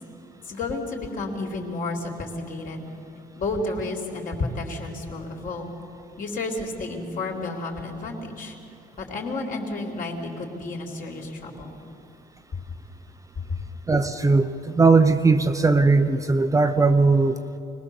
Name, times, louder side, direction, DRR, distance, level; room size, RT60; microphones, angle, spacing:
voice 1, 0.5-2.9 3.4-5.7 6.2-8.5 9.0-11.8 13.5-13.6, left 2 dB, 55° left, 0 dB, 3.7 m, -31 dB
voice 2, 13.9-17.4, right 3 dB, 20° right, 7 dB, 0.7 m, -19 dB
25.0 x 19.5 x 7.1 m, 2.6 s
cardioid pair, 110°, 17 cm